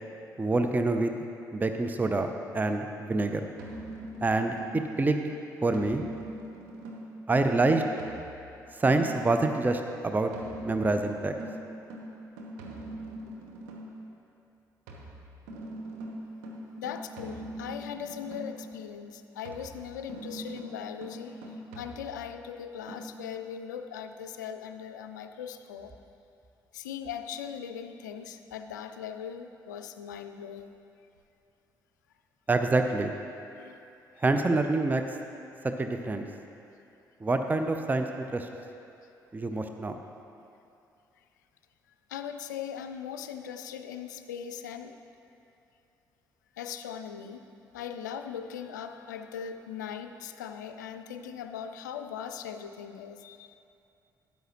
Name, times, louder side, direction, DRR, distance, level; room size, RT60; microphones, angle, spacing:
voice 1, 0.4-1.1 1.5-2.3 2.5-3.4 4.2-5.2 5.6-6.0 7.3-7.8 8.8-10.3 10.6-11.3 32.5-33.1 34.2-35.0 35.6-36.3 37.2-38.5 39.3-40.0, right 2 dB, 20° right, 6 dB, 0.5 m, -26 dB
sound 1, 3.6-5.0 5.7-9.5 10.3-14.0 14.9-18.7 19.5-22.4 22.9-23.1, right 1 dB, 70° right, 1.0 m, -42 dB
voice 2, 16.8-25.9 26.7-30.8 33.6-33.8 42.1-45.0 46.6-47.4 47.7-53.6, left 8 dB, 75° left, 8 dB, 0.3 m, -39 dB
12.5 x 9.2 x 3.0 m, 2.7 s
figure-of-eight pair, 40°, 10 cm